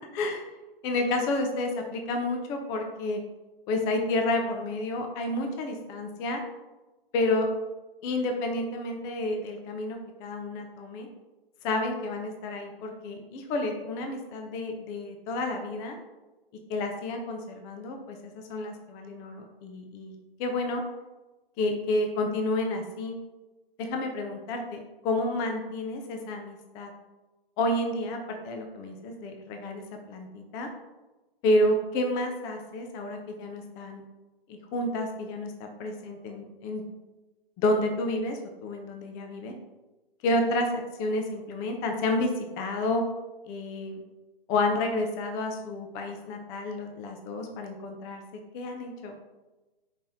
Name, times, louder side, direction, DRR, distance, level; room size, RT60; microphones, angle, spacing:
voice 1, 0.1-0.4 0.8-3.2 3.7-6.4 7.1-7.5 8.0-11.1 11.6-16.0 16.7-20.1 20.4-20.8 21.6-23.1 23.8-26.9 27.6-29.8 30.1-30.7 31.4-34.0 34.5-36.8 37.6-39.5 40.2-42.3 42.6-43.0 43.5-44.0 44.5-48.2 48.5-49.2, left 2 dB, 10° left, 3 dB, 0.5 m, -30 dB
5.3 x 5.1 x 5.7 m, 1.1 s
figure-of-eight pair, 135°, 30 cm